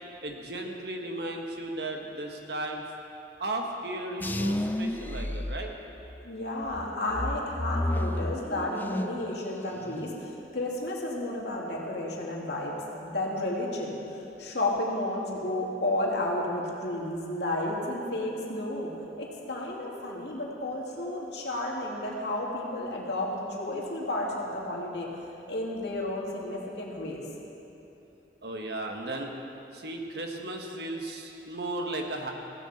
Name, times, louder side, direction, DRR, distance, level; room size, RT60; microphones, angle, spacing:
voice 1, 0.2-2.8 3.4-5.7 28.4-29.3 29.7-32.3, right 2 dB, 60° right, 2 dB, 1.5 m, -35 dB
sound 1, 4.2-6.2 6.7-9.3 9.6-10.2, left 1 dB, 10° left, 0.3 m, -32 dB
voice 2, 6.2-14.0 14.4-18.9 19.2-25.1 25.5-27.2, left 1 dB, 65° left, -2 dB, 2.4 m, -32 dB
17.0 x 16.5 x 4.3 m, 2.9 s
head